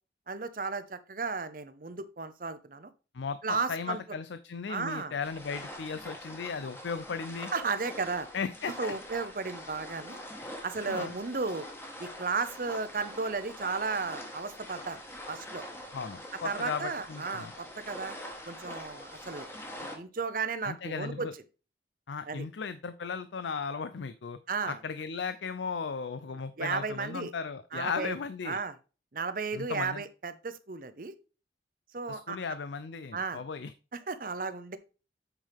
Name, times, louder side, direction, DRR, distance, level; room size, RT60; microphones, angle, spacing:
voice 1, 0.3-2.9 3.4-4.0 4.7-5.1 7.5-8.3 8.8-10.2 10.6-11.7 12.0-15.0 15.3-15.6 16.4-18.2 18.5-19.5 19.8-21.3 22.3-22.4 24.5-24.8 26.6-27.3 27.7-28.1 28.4-28.7 29.1-31.1 31.9-32.4 33.1-33.4 33.9-34.8, right 4 dB, 50° right, 12 dB, 0.8 m, -34 dB
voice 2, 3.1-7.5 8.3-8.9 10.9-11.1 15.9-17.5 20.6-21.3 22.1-24.4 24.7-28.6 29.5-30.0 32.1-33.7, left 5 dB, 80° left, 12 dB, 0.5 m, -36 dB
sound 1, 5.2-20.0, left 1 dB, 15° left, 1.4 m, -44 dB
8.2 x 5.5 x 3.4 m, 0.33 s
head